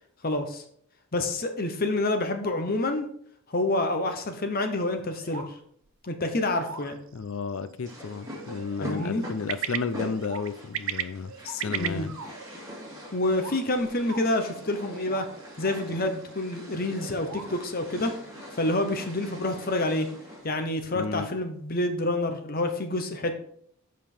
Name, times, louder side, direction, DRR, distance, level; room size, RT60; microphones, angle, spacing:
voice 1, 0.2-0.6 1.1-3.1 3.5-5.6 6.0-7.0 8.8-9.2 11.6-12.1 13.1-15.3 15.6-18.2 18.6-20.1 20.4-23.3, left 2 dB, 40° left, 0.8 m, -28 dB
sound 1, 4.9-5.5 5.8-5.9 6.3-7.3 8.1-9.1 9.9-10.5 11.2-12.5 13.2-14.5 14.8-15.3 15.6-16.0 16.9-17.5, right 3 dB, 85° right, 1.3 m, -44 dB
sound 2, 6.6-18.3, right 9 dB, 60° right, 0.5 m, -40 dB
voice 2, 7.1-12.1 20.9-21.3, left 5 dB, 65° left, 0.5 m, -33 dB
sound 3, 7.8-20.7, equal, 15° right, 2.1 m, -43 dB
7.6 x 5.2 x 4.4 m
head